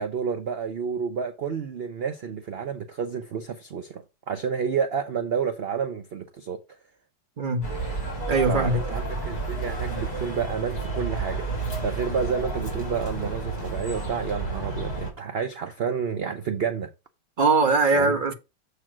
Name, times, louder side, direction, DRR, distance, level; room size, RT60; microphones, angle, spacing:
voice 1, 0.0-6.6 8.5-11.5 11.8-16.9 17.9-18.2, right 6 dB, 85° right, 0.5 m, -30 dB
voice 2, 7.4-7.7 8.3-8.8 17.4-18.3, right 3 dB, 40° right, 0.7 m, -21 dB
sound 1, 7.6-15.1, right 3 dB, 20° left, 3.7 m, -31 dB
7.5 x 3.3 x 5.9 m
omnidirectional pair, 1.9 m